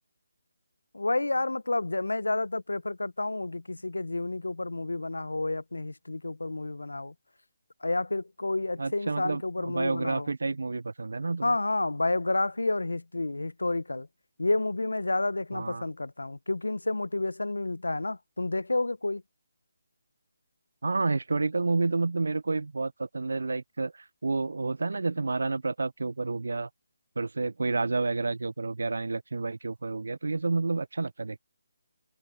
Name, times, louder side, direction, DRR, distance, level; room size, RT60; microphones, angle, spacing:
voice 1, 0.9-7.1 7.8-10.3 11.4-14.1 14.4-19.2, left 2 dB, 90° left, 0.9 m, -30 dB
voice 2, 8.8-11.5 15.5-15.8 20.8-23.9 24.2-26.7 27.2-31.4, right 3 dB, 75° right, 0.4 m, -29 dB
figure-of-eight pair, 150°, 0 cm